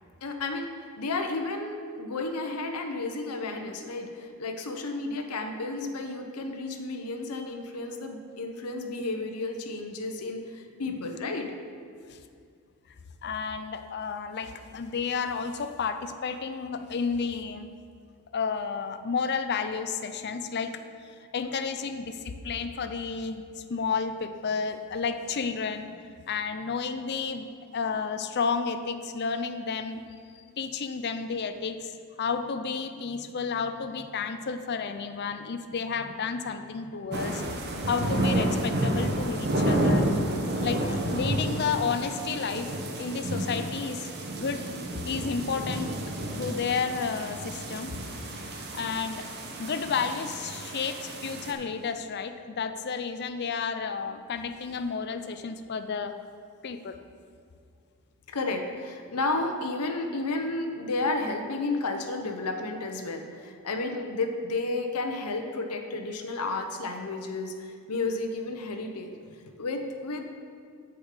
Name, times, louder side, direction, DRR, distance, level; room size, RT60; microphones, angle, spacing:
voice 1, 0.2-11.5 20.3-20.8 58.3-70.2, left 3 dB, 90° left, 4 dB, 0.8 m, -32 dB
voice 2, 13.2-17.7 18.3-20.8 21.3-26.0 26.3-30.0 30.3-37.4 37.9-40.1 40.6-42.7 43.0-44.1 44.4-44.6 45.1-45.9 46.3-47.9 48.7-49.2 49.6-56.1 56.6-57.0, left 5 dB, 50° left, 9 dB, 0.5 m, -31 dB
sound 1, 37.1-51.5, right 1 dB, 45° right, 1.0 m, -30 dB
8.2 x 6.9 x 5.0 m, 2.3 s
head